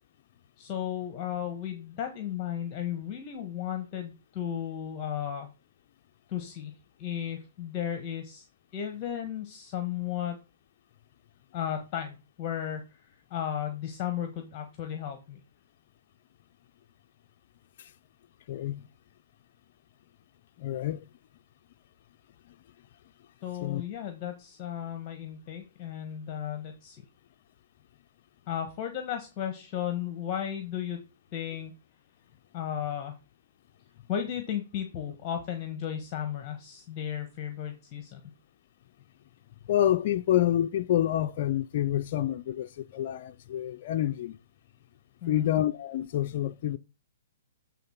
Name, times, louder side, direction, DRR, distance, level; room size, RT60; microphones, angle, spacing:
voice 1, 0.6-5.5 6.3-8.5 8.7-10.4 11.5-15.4 23.4-27.0 28.5-31.0 31.3-31.7 32.5-33.1 34.1-38.2 45.2-45.5, left 10 dB, 30° left, 1.3 m, -34 dB
voice 2, 18.5-18.9 20.6-21.1 23.6-23.8 39.7-44.4 45.3-46.8, left 12 dB, 50° left, 0.4 m, -28 dB
8.4 x 3.8 x 5.8 m
hypercardioid pair, 145°, 0 cm